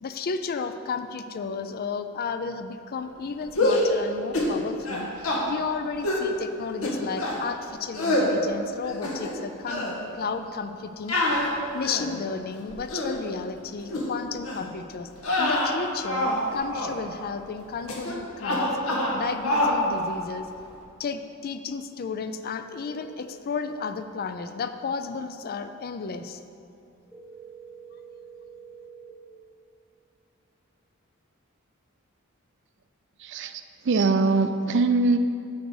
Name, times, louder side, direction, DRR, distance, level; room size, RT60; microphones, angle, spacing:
voice 1, 0.0-9.9 10.1-11.3 11.7-15.1 15.4-18.8 19.1-20.5 21.0-26.4, left 5 dB, 45° left, 9 dB, 0.4 m, -33 dB
sound 1, 3.5-3.9 4.3-4.6 4.8-5.4 6.0-6.3 6.8-7.4 7.9-8.3 8.8-9.4 9.7-9.9 11.1-12.1 12.7-13.1 13.9-14.1 14.4-14.7 15.2-16.4 16.7-16.9 17.9-18.1 18.4-19.2 19.4-19.8, left 1 dB, 85° left, 1.4 m, -25 dB
sound 2, 22.8-23.1 27.1-29.1, right 6 dB, ahead, 1.0 m, -46 dB
voice 2, 33.2-35.2, right 3 dB, 55° right, 9 dB, 0.5 m, -23 dB
9.4 x 3.9 x 6.4 m, 2.6 s
head